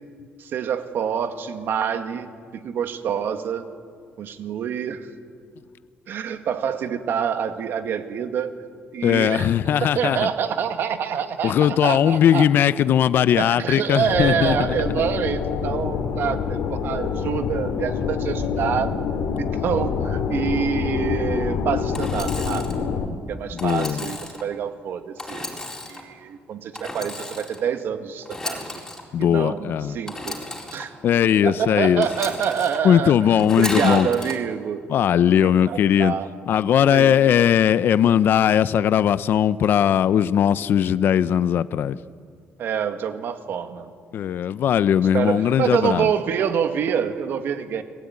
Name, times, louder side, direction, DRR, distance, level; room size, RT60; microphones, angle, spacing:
voice 1, 0.4-3.7 4.2-5.1 6.1-8.5 8.9-9.5 9.8-12.5 13.4-18.9 19.4-22.7 23.3-25.5 25.9-28.6 29.2-30.4 30.7-30.9 31.4-33.2 33.6-34.8 35.6-36.3 36.9-37.1 42.6-43.9 45.1-47.8, right 8 dB, 55° right, 8 dB, 2.0 m, -26 dB
voice 2, 9.0-10.3 11.4-14.6 23.5-24.1 29.1-30.0 31.0-32.1 32.8-34.1 34.9-36.1 36.5-42.0 44.1-46.1, left 9 dB, 55° left, 15 dB, 0.6 m, -19 dB
sound 1, 14.1-23.1, left 6 dB, 70° left, 2.9 m, -26 dB
Engine / Sawing, 21.9-22.8 23.6-24.4 25.2-26.0 26.7-27.6 28.2-29.0 30.1-30.8 32.0-32.8 33.4-34.3, left 2 dB, 10° left, 4.4 m, -33 dB
29.5 x 20.5 x 9.6 m, 2.1 s
cardioid pair, 150°, 4 cm